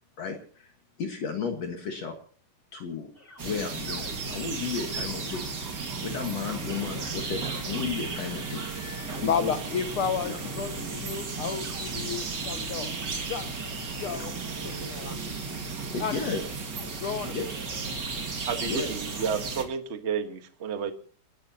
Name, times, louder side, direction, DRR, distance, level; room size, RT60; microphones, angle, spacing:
voice 1, 0.2-0.7 1.0-2.1 2.7-3.1 3.4-5.4 6.0-8.6 9.2-9.6 10.2-10.4 15.9-16.4 17.3-17.5 18.6-18.9, left 5 dB, 55° left, 2.6 m, -33 dB
sound 1, 3.1-19.0, left 4 dB, 25° left, 1.4 m, -50 dB
sound 2, 3.4-19.6, right 4 dB, 35° right, 2.3 m, -34 dB
voice 2, 9.1-12.9 13.3-13.5 14.0-14.3 14.6-15.3 16.0-16.2 17.0-17.3, left 7 dB, 80° left, 1.2 m, -32 dB
voice 3, 18.5-20.9, right 6 dB, 65° right, 0.6 m, -31 dB
29.5 x 13.0 x 2.9 m
omnidirectional pair, 3.8 m